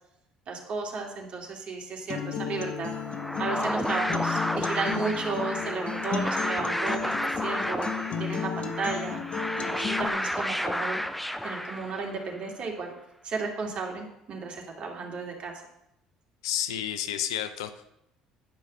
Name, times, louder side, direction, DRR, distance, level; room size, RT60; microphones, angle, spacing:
voice 1, 0.5-2.9 3.4-9.2 9.6-11.0 11.4-12.9 13.2-15.6, right 4 dB, 45° right, 1 dB, 2.6 m, -34 dB
Acoustic guitar, 2.1-10.1, left 6 dB, 45° left, 1.3 m, -34 dB
sound 1, 2.9-12.3, equal, 5° left, 0.7 m, -31 dB
voice 2, 16.4-17.9, left 11 dB, 75° left, 10 dB, 0.7 m, -31 dB
10.5 x 5.6 x 6.5 m, 0.82 s
hypercardioid pair, 60°, 3 cm